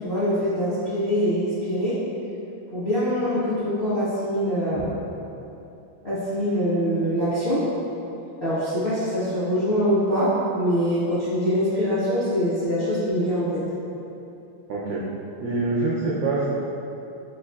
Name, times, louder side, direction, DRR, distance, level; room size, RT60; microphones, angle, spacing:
voice 1, 0.0-2.0 2.7-4.9 6.0-7.6 8.4-13.6, equal, 50° left, -13 dB, 0.6 m, -24 dB
voice 2, 14.7-15.0 15.4-16.5, right 3 dB, 80° right, -6 dB, 0.9 m, -25 dB
5.3 x 3.0 x 2.2 m, 2.9 s
omnidirectional pair, 2.4 m